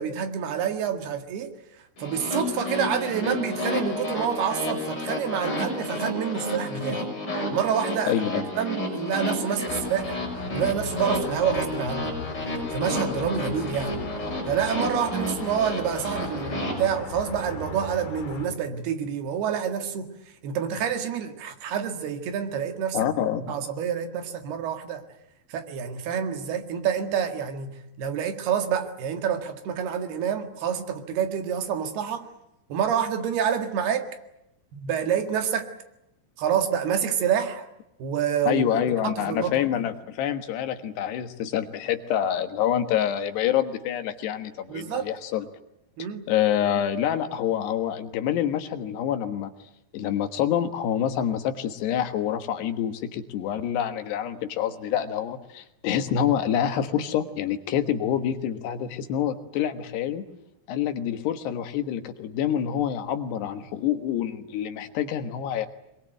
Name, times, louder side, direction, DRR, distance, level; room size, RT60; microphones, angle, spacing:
voice 1, 0.0-7.1 7.5-8.1 8.6-10.2 10.5-12.2 12.7-14.0 14.5-20.1 20.4-23.0 23.5-25.0 25.5-32.3 32.7-34.1 34.7-35.7 36.4-37.7 38.0-39.7 44.7-45.1 46.0-46.3, right 8 dB, 75° right, 6 dB, 3.8 m, -28 dB
sound 1, 2.0-16.7, left 1 dB, 25° left, 6.7 m, -31 dB
voice 2, 8.0-8.5 22.9-23.5 38.5-45.5 46.3-49.5 49.9-60.2 60.7-65.7, left 10 dB, 85° left, 8 dB, 3.6 m, -27 dB
sound 2, 9.7-18.5, left 5 dB, 65° left, 4.1 m, -38 dB
22.5 x 22.0 x 9.2 m, 0.84 s
omnidirectional pair, 4.7 m